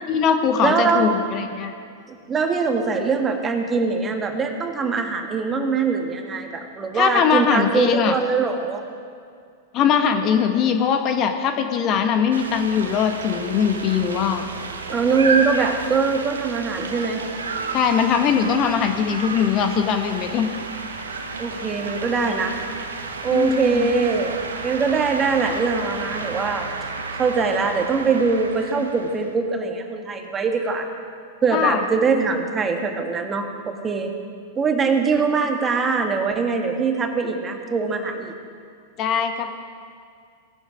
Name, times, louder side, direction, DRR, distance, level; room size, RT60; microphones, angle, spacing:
voice 1, 0.1-1.7 6.9-8.1 9.7-14.4 17.7-20.5 23.3-23.9 31.5-31.8 39.0-39.6, left 7 dB, 40° left, 6 dB, 1.2 m, -21 dB
voice 2, 0.6-1.1 2.1-8.8 14.9-17.2 21.4-22.6 23.2-24.4 24.6-26.7 27.2-30.9 31.4-34.1 34.6-38.3, right 4 dB, 25° right, 4 dB, 1.7 m, -22 dB
sound 1, 12.3-29.3, right 4 dB, 85° right, 1.4 m, -31 dB
17.5 x 11.0 x 5.1 m, 2.2 s
hypercardioid pair, 100°, 0 cm